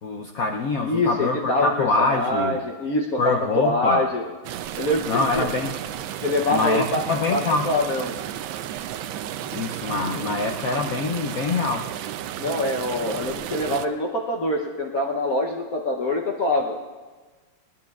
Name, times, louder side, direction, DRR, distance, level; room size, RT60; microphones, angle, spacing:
voice 1, 0.0-2.6 3.2-4.1 5.1-5.7 6.5-7.7 9.5-11.9, left 3 dB, 85° left, 2 dB, 0.7 m, -25 dB
voice 2, 0.8-4.3 4.8-5.5 6.2-7.0 7.3-8.1 10.1-10.3 12.4-16.8, left 1 dB, 55° left, 0 dB, 1.0 m, -24 dB
sound 1, 4.4-13.9, right 11 dB, 75° right, 1.2 m, -33 dB
19.5 x 19.5 x 2.4 m, 1.3 s
omnidirectional pair, 2.4 m